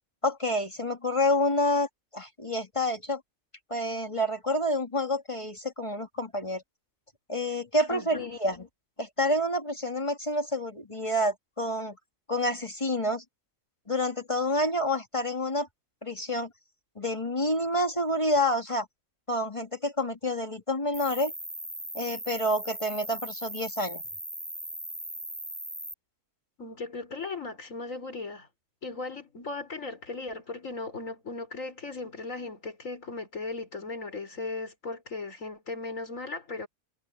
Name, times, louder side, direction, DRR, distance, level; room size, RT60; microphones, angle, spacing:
voice 1, 0.2-1.9 2.1-3.2 3.7-6.6 7.3-8.7 9.0-12.0 12.3-13.2 13.9-15.7 16.0-16.5 17.0-18.9 19.3-21.3 21.9-24.0, left 1 dB, 25° left, 1.9 m, -28 dB
voice 2, 7.9-8.3 26.6-28.5 28.8-36.7, left 3 dB, 70° left, 4.8 m, -37 dB
Cricket, 20.9-25.9, equal, ahead, 5.0 m, -39 dB
omnidirectional pair, 1.4 m